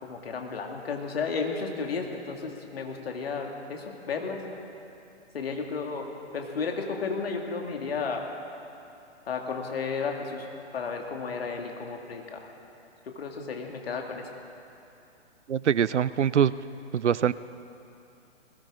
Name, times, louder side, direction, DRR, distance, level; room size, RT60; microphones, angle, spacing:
voice 1, 0.0-4.4 5.3-6.1 6.3-8.2 9.3-10.5 10.7-12.5 13.2-14.3, left 5 dB, 55° left, 2 dB, 2.1 m, -33 dB
voice 2, 15.5-16.5 16.9-17.3, right 8 dB, 75° right, 17 dB, 0.5 m, -23 dB
20.5 x 17.5 x 3.7 m, 2.8 s
figure-of-eight pair, 125°, 35 cm